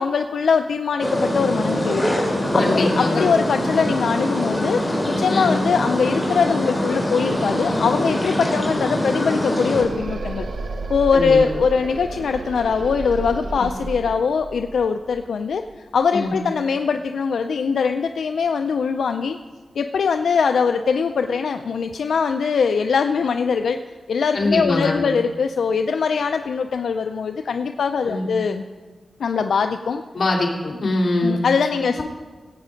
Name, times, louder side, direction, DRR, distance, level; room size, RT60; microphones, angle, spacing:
voice 1, 0.0-2.2 2.5-4.8 5.1-10.5 10.9-15.6 15.9-19.4 19.8-23.8 24.1-28.6 29.2-30.0 31.2-32.0, left 5 dB, 85° left, 6 dB, 0.4 m, -22 dB
sound 1, 1.0-9.8, equal, ahead, 3.3 m, -23 dB
voice 2, 2.6-3.3 5.3-5.6 11.1-11.4 13.6-13.7 16.1-16.3 24.3-25.0 28.1-28.3 30.1-31.4 32.0-32.1, left 2 dB, 50° left, -3 dB, 2.9 m, -23 dB
sound 2, 7.7-16.4, right 3 dB, 75° right, 0.9 m, -33 dB
16.5 x 8.4 x 5.1 m, 1.4 s
wide cardioid pair, 100°, 0 cm